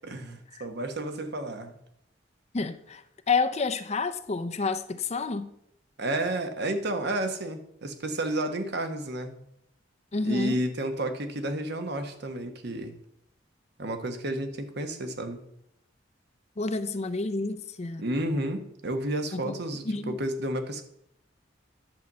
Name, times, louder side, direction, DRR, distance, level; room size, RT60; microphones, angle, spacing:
voice 1, 0.0-1.8 6.0-9.4 10.2-12.9 13.8-15.4 18.0-20.8, right 1 dB, 60° right, 1.3 m, -31 dB
voice 2, 2.5-5.5 10.1-10.6 16.6-18.0 19.3-20.2, left 4 dB, 35° left, 0.6 m, -30 dB
10.5 x 5.4 x 7.4 m
head